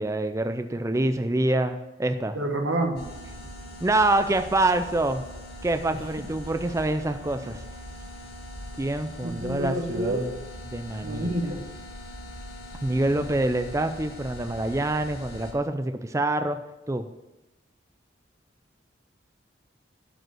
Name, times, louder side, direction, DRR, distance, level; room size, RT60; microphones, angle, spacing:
voice 1, 0.0-2.4 3.8-5.2 5.6-7.6 8.8-10.3 10.7-11.3 12.8-16.6 16.9-17.1, right 2 dB, 15° right, 8 dB, 0.4 m, -26 dB
voice 2, 2.3-3.0 9.2-10.3 11.0-11.6 12.9-13.2, right 1 dB, 85° right, 4 dB, 1.7 m, -28 dB
sound 1, 3.0-15.5, left 1 dB, 55° left, 2.3 m, -41 dB
12.0 x 5.2 x 7.7 m, 0.98 s
head